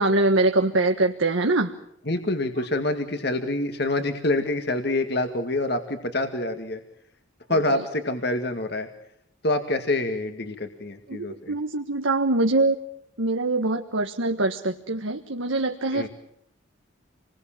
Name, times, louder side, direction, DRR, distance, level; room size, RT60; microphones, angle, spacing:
voice 1, 0.0-1.7 7.7-7.8 11.1-12.8 13.2-16.1, right 2 dB, 85° right, 4 dB, 1.6 m, -23 dB
voice 2, 2.1-6.8 7.5-8.9 9.4-11.5 15.9-16.1, left 2 dB, 55° left, 6 dB, 2.0 m, -26 dB
28.5 x 21.0 x 7.5 m, 0.75 s
head